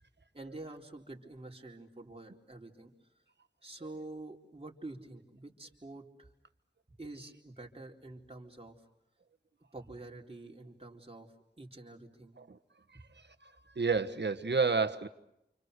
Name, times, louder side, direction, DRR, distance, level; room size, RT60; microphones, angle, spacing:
voice 1, 0.3-2.9 3.6-6.3 6.9-8.8 9.7-12.4 12.9-13.0, right 2 dB, 30° right, 0 dB, 4.1 m, -47 dB
voice 2, 13.7-15.1, right 4 dB, 65° right, 10 dB, 1.4 m, -29 dB
29.5 x 27.5 x 6.8 m, 0.84 s
wide cardioid pair, 70°, 19 cm